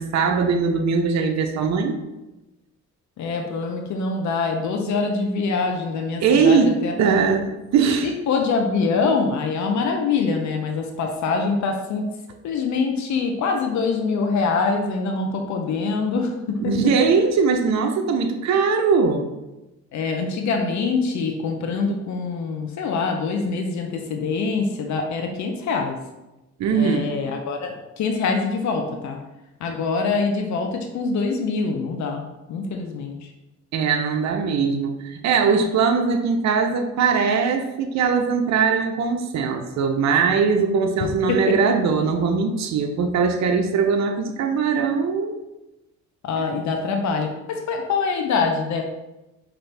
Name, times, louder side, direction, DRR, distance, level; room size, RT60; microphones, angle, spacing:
voice 1, 0.0-2.0 6.2-8.1 16.7-19.3 26.6-27.1 33.7-45.4, right 5 dB, 65° right, 4 dB, 0.6 m, -21 dB
voice 2, 3.2-7.2 8.0-12.1 12.4-16.8 19.9-26.0 26.7-29.2 29.6-32.2 32.5-33.3 41.0-41.5 46.2-48.8, left 4 dB, 70° left, 3 dB, 0.7 m, -24 dB
5.8 x 2.6 x 3.3 m, 0.99 s
cardioid pair, 90°, 30 cm